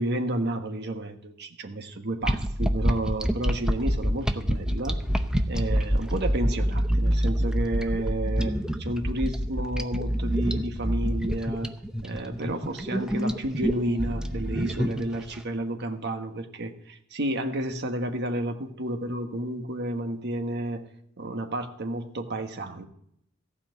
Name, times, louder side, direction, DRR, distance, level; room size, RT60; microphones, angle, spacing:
voice 1, 0.0-5.0 5.5-11.7 12.0-20.9 21.2-22.8, right 1 dB, 55° right, 5 dB, 1.3 m, -31 dB
sound 1, 2.2-15.3, equal, 5° right, 0.7 m, -26 dB
15.0 x 5.7 x 8.0 m, 0.74 s
head